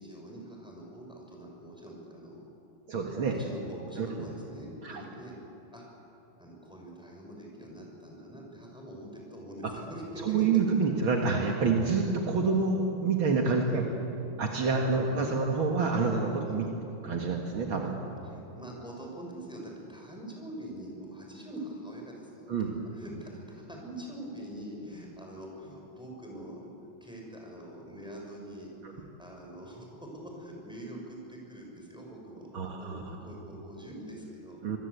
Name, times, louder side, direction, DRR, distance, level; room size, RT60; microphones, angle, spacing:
voice 1, 0.0-2.5 3.3-5.4 5.7-5.8 6.4-10.5 13.6-13.8 15.0-15.2 16.4-16.8 18.2-22.5 22.9-26.7 27.0-34.6, right 1 dB, ahead, -1 dB, 5.9 m, -44 dB
voice 2, 2.9-3.4 4.0-4.3 4.8-5.0 10.3-13.8 14.4-16.6 17.0-18.0 22.5-22.8 32.5-33.2 34.6-34.8, right 4 dB, 70° right, 1 dB, 2.5 m, -27 dB
26.0 x 22.5 x 8.3 m, 2.9 s
omnidirectional pair, 2.3 m